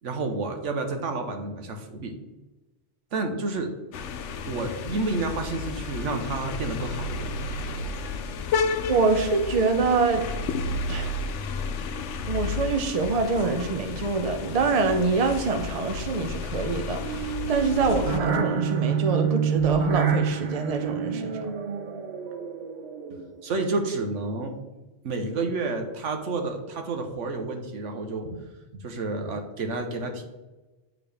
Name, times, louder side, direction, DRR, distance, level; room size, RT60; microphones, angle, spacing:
voice 1, 0.0-2.1 3.1-3.7 4.5-7.3 23.4-24.5 25.0-28.4 28.7-30.2, right 3 dB, 85° right, 4 dB, 1.3 m, -30 dB
sound 1, 3.9-18.2, left 4 dB, 75° left, 0.9 m, -32 dB
voice 2, 8.9-10.3 10.9-11.2 12.3-21.5, right 4 dB, 40° right, 6 dB, 0.6 m, -25 dB
sound 2, 17.0-23.4, right 7 dB, 70° right, 1.0 m, -28 dB
10.5 x 3.8 x 3.4 m, 1.1 s
omnidirectional pair, 1.2 m